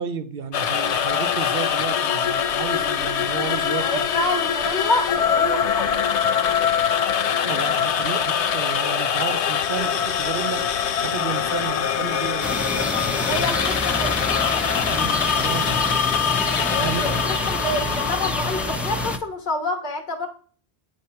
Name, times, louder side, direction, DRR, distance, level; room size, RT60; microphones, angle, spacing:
voice 1, 0.0-4.1 7.4-10.7 11.0-12.5 14.9-15.8 16.8-17.1, right 6 dB, 65° right, 0.8 m, -32 dB
sound 1, 0.5-19.2, left 8 dB, 90° left, 0.9 m, -23 dB
voice 2, 3.8-6.0 13.2-14.1 16.6-20.3, left 2 dB, 45° left, 1.3 m, -27 dB
sound 2, 12.4-19.2, equal, ahead, 0.3 m, -28 dB
8.2 x 3.1 x 5.6 m
omnidirectional pair, 1.1 m